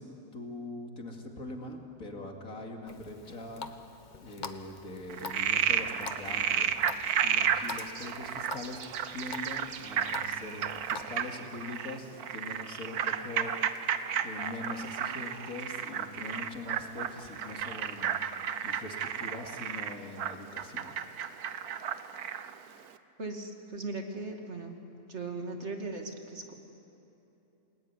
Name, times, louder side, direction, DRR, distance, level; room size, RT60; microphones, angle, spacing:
voice 1, 0.0-3.8 4.2-8.8 9.1-13.8 14.2-18.2 18.6-21.0, left 2 dB, 65° left, 3 dB, 2.9 m, -42 dB
Water tap faucet, 2.9-11.0, left 4 dB, 35° left, 1.1 m, -46 dB
Frog, 5.1-22.5, right 8 dB, 85° right, 1.4 m, -32 dB
voice 2, 23.2-24.8 25.1-26.5, right 3 dB, 50° right, 4 dB, 2.6 m, -38 dB
28.5 x 19.5 x 9.7 m, 3.0 s
omnidirectional pair, 1.6 m